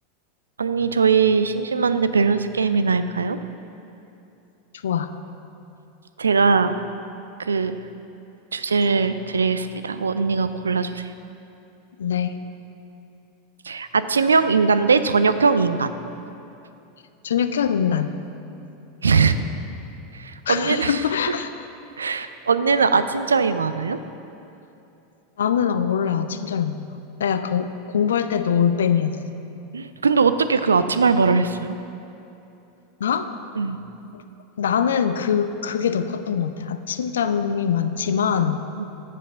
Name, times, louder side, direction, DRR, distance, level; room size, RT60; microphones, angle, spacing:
voice 1, 0.6-3.4 6.2-6.8 7.4-7.8 8.5-11.1 13.7-15.9 19.0-19.4 20.1-21.0 22.0-24.0 29.7-31.8 33.6-33.8 38.8-38.9, right 5 dB, 80° right, 12 dB, 0.3 m, -20 dB
voice 2, 12.0-12.4 17.2-18.1 20.5-21.7 25.4-26.9 27.2-29.2 33.0-33.3 34.1-34.2 34.6-38.7, left 7 dB, 70° left, 10 dB, 0.4 m, -23 dB
7.9 x 4.9 x 6.8 m, 2.8 s
figure-of-eight pair, 85°, 0 cm